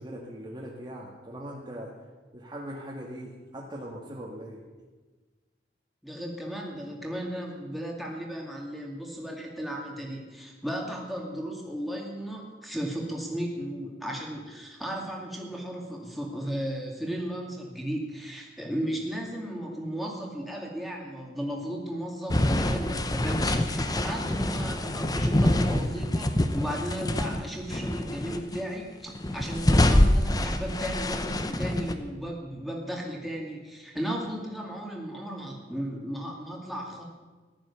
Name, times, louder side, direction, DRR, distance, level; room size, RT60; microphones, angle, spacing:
voice 1, 0.0-1.9 2.3-4.6 22.4-22.7, equal, 25° right, -4 dB, 1.9 m, -40 dB
voice 2, 6.0-37.0, equal, ahead, -1 dB, 2.4 m, -35 dB
sound 1, 22.3-27.4 27.7-28.6 29.1-31.9, left 1 dB, 20° left, 0.9 m, -25 dB
14.5 x 12.5 x 7.1 m, 1.3 s
head